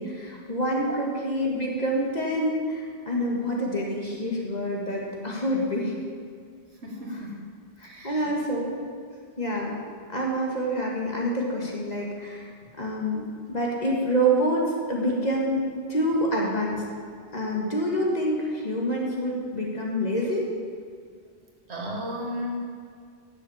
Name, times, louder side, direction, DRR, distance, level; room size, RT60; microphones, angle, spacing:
voice 1, 0.0-5.9 7.1-7.2 7.8-8.8 9.4-9.7 10.1-12.5 12.8-16.8 17.3-20.5, equal, 40° left, -2 dB, 2.0 m, -27 dB
voice 2, 6.8-7.4 7.8-8.3 21.7-22.6, equal, 80° right, -1 dB, 2.1 m, -34 dB
10.0 x 7.3 x 7.2 m, 2.1 s
omnidirectional pair, 1.1 m